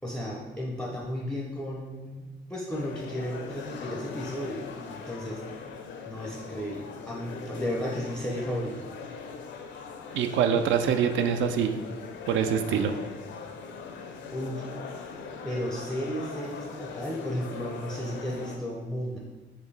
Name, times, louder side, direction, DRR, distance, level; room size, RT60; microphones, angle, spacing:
voice 1, 0.0-5.4 6.1-8.9 14.3-14.7 15.4-19.2, equal, 5° left, -2 dB, 0.5 m, -34 dB
sound 1, 2.7-18.6, left 5 dB, 70° left, 0.5 m, -41 dB
voice 2, 10.1-11.7 12.3-12.9, right 7 dB, 75° right, 8 dB, 0.4 m, -24 dB
4.4 x 3.0 x 3.2 m, 1.2 s
cardioid pair, 90°, 20 cm